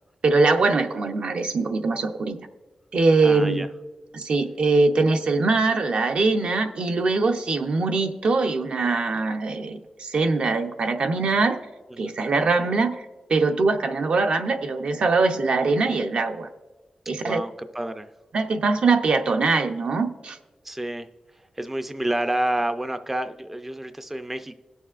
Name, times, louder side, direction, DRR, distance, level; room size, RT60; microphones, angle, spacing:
voice 1, 0.2-2.4 2.9-3.7 4.1-11.6 12.0-13.0 13.3-16.5 17.1-17.4 18.3-20.4, right 3 dB, 65° right, 5 dB, 0.7 m, -22 dB
voice 2, 3.2-3.7 11.9-12.1 17.2-18.1 20.6-21.1 21.3-24.6, right 1 dB, 10° right, 8 dB, 0.4 m, -29 dB
20.5 x 6.9 x 2.4 m, 1.2 s
wide cardioid pair, 135°, 2 cm